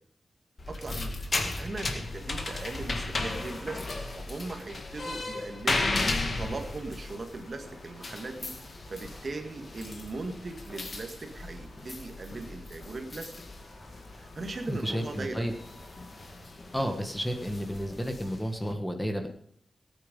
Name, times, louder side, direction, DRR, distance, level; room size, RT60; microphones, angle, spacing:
sound 1, 0.6-18.7, left 2 dB, 40° left, 1.7 m, -36 dB
voice 1, 0.7-5.9 6.4-8.5 8.9-13.3 14.1-15.5, right 3 dB, 40° right, 5 dB, 1.8 m, -39 dB
sound 2, 2.0-17.9, left 1 dB, 80° left, 4.8 m, -53 dB
voice 2, 14.7-15.5 16.7-19.3, equal, 5° left, 5 dB, 1.4 m, -31 dB
18.0 x 9.3 x 5.3 m, 0.62 s
wide cardioid pair, 170°, 0 cm